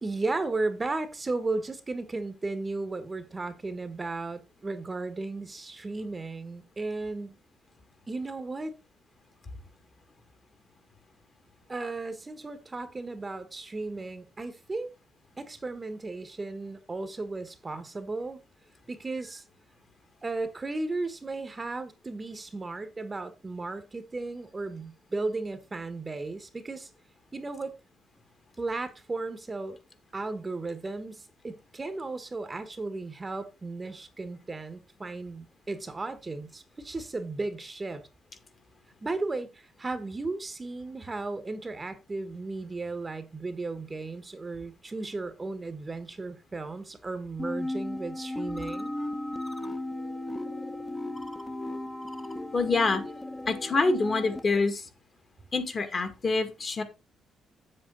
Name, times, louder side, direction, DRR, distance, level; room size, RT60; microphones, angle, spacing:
voice 1, 0.0-7.4 8.1-8.8 11.7-14.9 15.4-18.4 18.9-19.4 20.2-26.9 27.3-27.7 28.6-29.8 30.1-38.0 39.0-48.9, right 3 dB, 25° right, 1.2 m, -35 dB
sound 1, 47.4-54.4, left 1 dB, 15° left, 1.0 m, -36 dB
voice 2, 52.5-53.0 53.5-54.9 55.5-56.8, left 3 dB, 40° left, 1.9 m, -26 dB
7.8 x 7.2 x 3.8 m
cardioid pair, 90°, 0 cm